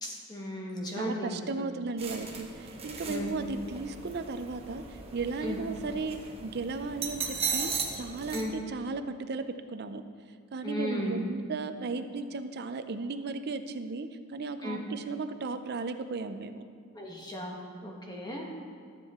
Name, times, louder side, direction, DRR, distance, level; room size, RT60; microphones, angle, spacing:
voice 1, 0.0-1.5 3.0-3.3 5.4-5.6 8.3-8.5 10.6-11.2 14.6-14.8 16.9-18.5, left 1 dB, 20° left, -1 dB, 1.3 m, -35 dB
voice 2, 1.0-10.0 10.5-16.6, right 4 dB, 45° right, 10 dB, 0.5 m, -35 dB
sound 1, 2.0-8.4, right 5 dB, 25° right, 0.9 m, -37 dB
13.0 x 7.3 x 3.6 m, 2.2 s
head